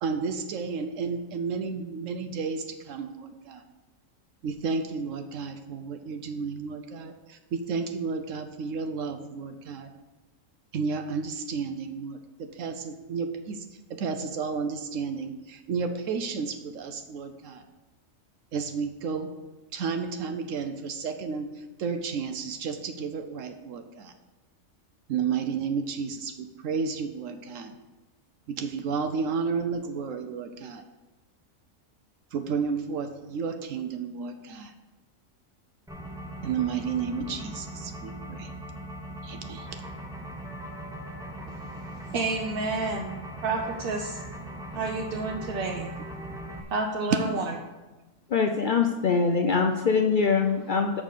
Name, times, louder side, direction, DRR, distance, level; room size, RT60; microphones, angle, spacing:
voice 1, 0.0-3.6 4.4-9.9 10.7-13.6 13.9-17.6 18.5-19.3 19.7-24.1 25.1-27.8 28.5-30.8 32.3-34.7 36.4-38.5 39.2-39.7 44.7-44.8, right 5 dB, 75° right, 7 dB, 1.0 m, -32 dB
sound 1, 35.9-46.6, right 1 dB, 5° right, 0.4 m, -39 dB
voice 2, 42.0-43.1 43.4-44.2 44.7-45.9 46.7-47.4, right 3 dB, 55° right, 1 dB, 0.7 m, -29 dB
voice 3, 48.3-51.0, left 5 dB, 60° left, 4 dB, 0.5 m, -23 dB
6.1 x 5.4 x 6.5 m, 1.1 s
omnidirectional pair, 1.4 m